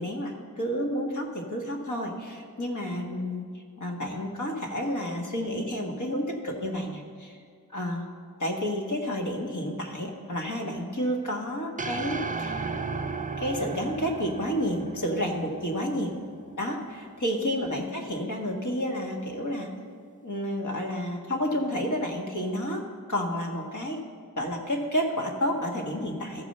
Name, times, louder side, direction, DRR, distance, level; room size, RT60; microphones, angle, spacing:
voice 1, 0.0-7.4 7.7-8.1 8.4-12.7 13.4-16.1 16.6-19.7 20.2-22.8 23.1-24.0 24.4-26.5, equal, 55° left, 1 dB, 1.7 m, -30 dB
sound 1, 11.8-16.2, right 4 dB, 20° right, 0.5 m, -35 dB
14.5 x 4.8 x 6.7 m, 2.1 s
cardioid pair, 55°, 37 cm